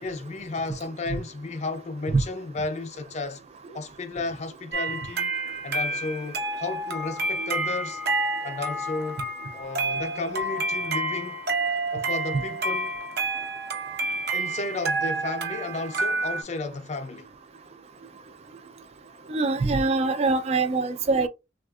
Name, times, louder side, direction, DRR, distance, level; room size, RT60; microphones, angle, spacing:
voice 1, 0.0-3.4 3.7-5.3 5.6-8.0 8.4-9.2 9.5-11.4 11.9-13.0 14.3-17.3, left 3 dB, 40° left, 0.5 m, -33 dB
sound 1, 4.7-16.4, right 2 dB, 65° right, 0.8 m, -29 dB
voice 2, 19.3-21.3, right 3 dB, 35° right, 0.3 m, -24 dB
3.4 x 2.3 x 2.3 m
head